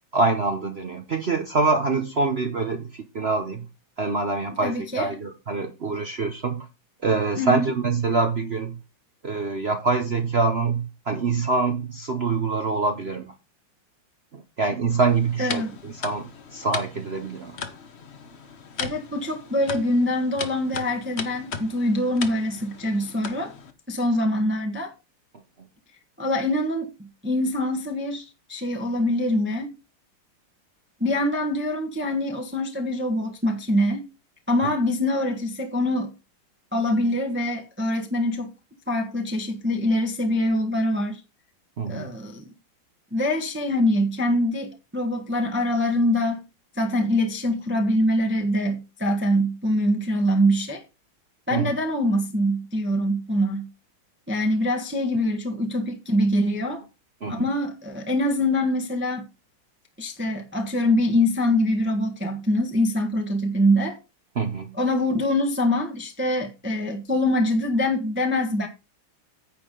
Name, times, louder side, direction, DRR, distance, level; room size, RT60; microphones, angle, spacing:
voice 1, 0.1-3.7 4.0-6.7 7.0-8.8 9.2-13.3 14.3-17.6 34.6-34.7 41.8-42.1 51.5-51.7 57.2-57.5 64.4-64.7, right 4 dB, 55° right, 0.7 m, -25 dB
voice 2, 4.6-5.1 7.4-7.7 15.4-15.7 18.8-23.5 23.9-24.9 26.2-29.7 31.0-34.0 34.5-36.1 36.7-38.5 38.9-41.2 41.9-42.5 43.1-46.4 46.8-50.8 51.5-53.7 54.3-56.8 57.3-59.2 60.0-64.0 64.8-68.7, left 1 dB, 5° right, 1.0 m, -24 dB
sound 1, 14.9-23.7, left 5 dB, 40° left, 1.0 m, -37 dB
9.7 x 8.3 x 3.8 m
omnidirectional pair, 2.2 m